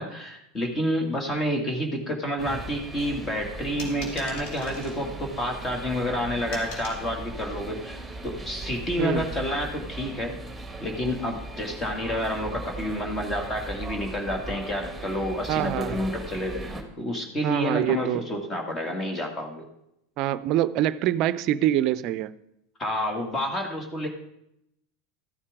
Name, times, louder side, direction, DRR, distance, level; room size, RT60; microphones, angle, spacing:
voice 1, 0.0-8.0 8.2-10.3 10.8-19.6 22.8-24.1, equal, 25° left, 2.3 m, -29 dB
sound 1, 2.4-16.8, right 2 dB, 5° right, 2.0 m, -38 dB
sound 2, 3.8-5.0 6.5-7.0, left 1 dB, 55° left, 3.7 m, -40 dB
voice 2, 15.5-16.0 17.4-18.3 20.2-22.3, right 12 dB, 50° right, 0.5 m, -25 dB
13.5 x 9.6 x 3.7 m
figure-of-eight pair, 80°, 0 cm